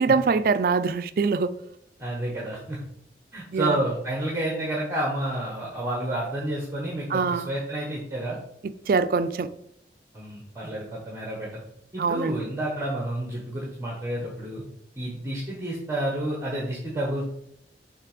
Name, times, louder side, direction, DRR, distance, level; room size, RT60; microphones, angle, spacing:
voice 1, 0.0-1.5 3.5-3.8 7.1-7.5 8.9-9.5 12.0-12.4, right 4 dB, 55° right, 0.4 m, -23 dB
voice 2, 2.0-2.8 3.3-8.4 10.1-11.6 11.9-14.6 15.0-17.3, right 1 dB, 15° right, 1.1 m, -30 dB
6.6 x 3.3 x 5.0 m
head